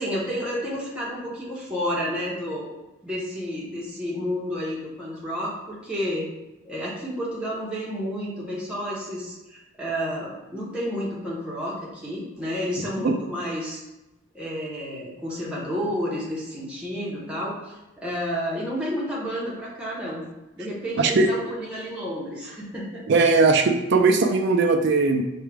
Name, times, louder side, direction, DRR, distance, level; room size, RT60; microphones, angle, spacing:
voice 1, 0.0-2.7 3.0-6.3 6.6-13.8 14.3-20.2 20.6-23.0, equal, 5° right, -7 dB, 0.8 m, -30 dB
voice 2, 21.0-21.3 23.1-25.2, right 3 dB, 55° right, 5 dB, 0.4 m, -19 dB
4.7 x 2.2 x 3.2 m, 1.0 s
head